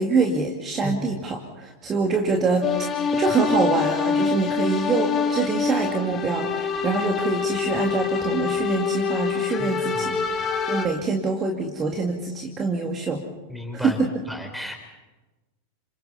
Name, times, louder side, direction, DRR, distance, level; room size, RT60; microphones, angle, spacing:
voice 1, 0.0-2.7 3.1-13.2 13.7-14.1, right 4 dB, 25° right, 1 dB, 2.4 m, -25 dB
sound 1, 2.6-10.9, left 5 dB, 25° left, 2.3 m, -25 dB
voice 2, 9.6-10.3 13.5-14.0 14.3-14.8, equal, ahead, 4 dB, 4.1 m, -34 dB
30.0 x 26.5 x 4.2 m, 1.1 s
figure-of-eight pair, 90°, 0 cm